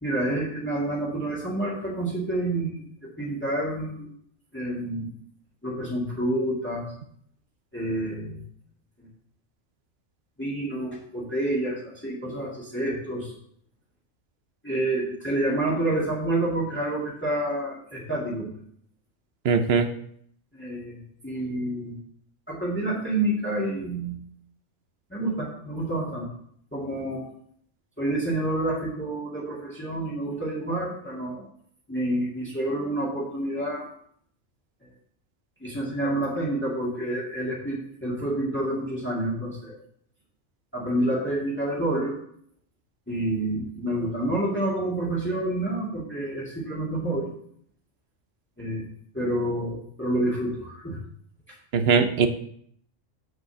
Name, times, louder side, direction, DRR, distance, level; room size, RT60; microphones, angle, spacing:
voice 1, 0.0-4.1 4.5-5.1 5.6-6.9 7.7-8.4 9.0-9.1 10.4-13.3 14.6-18.5 20.5-22.0 22.5-24.2 25.1-26.3 26.7-27.3 28.0-31.4 31.9-33.9 35.6-39.8 40.7-42.2 43.1-47.3 48.6-48.8 49.1-51.0, right 1 dB, 10° left, -6 dB, 1.9 m, -28 dB
voice 2, 19.4-19.9 51.7-52.3, right 5 dB, 60° right, 9 dB, 0.8 m, -20 dB
6.2 x 5.2 x 6.9 m, 0.65 s
omnidirectional pair, 1.4 m